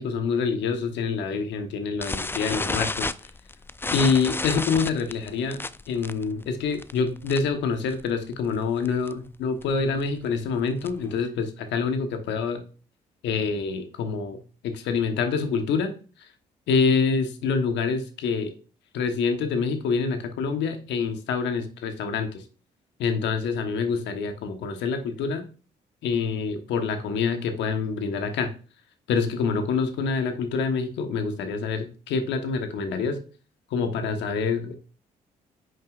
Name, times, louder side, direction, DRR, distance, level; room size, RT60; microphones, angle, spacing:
voice 1, 0.0-3.1 3.9-12.6 13.2-14.4 14.6-15.9 16.2-16.3 16.7-18.5 18.9-22.4 23.0-25.5 26.0-28.5 29.1-33.2 33.7-34.8, left 5 dB, 70° left, 7 dB, 1.1 m, -26 dB
sound 1, 2.0-7.6 7.9-8.2 8.5-8.6 8.9-9.1 9.6-11.2, left 3 dB, 10° left, 0.4 m, -31 dB
8.9 x 6.4 x 2.4 m, 0.38 s
hypercardioid pair, 55°, 19 cm